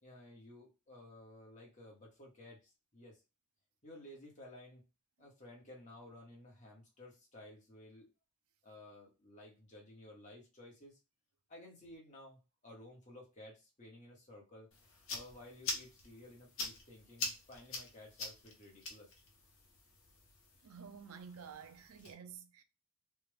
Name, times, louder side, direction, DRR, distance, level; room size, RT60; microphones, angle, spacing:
voice 1, 0.0-3.2 3.8-4.8 5.2-8.1 8.6-11.0 11.5-14.7 15.1-19.1, left 1 dB, 35° left, 1.3 m, -55 dB
sound 1, 14.7-22.1, left 3 dB, 60° left, 1.0 m, -45 dB
voice 2, 20.6-22.6, right 6 dB, 80° right, 0.5 m, -51 dB
3.4 x 2.4 x 3.3 m
head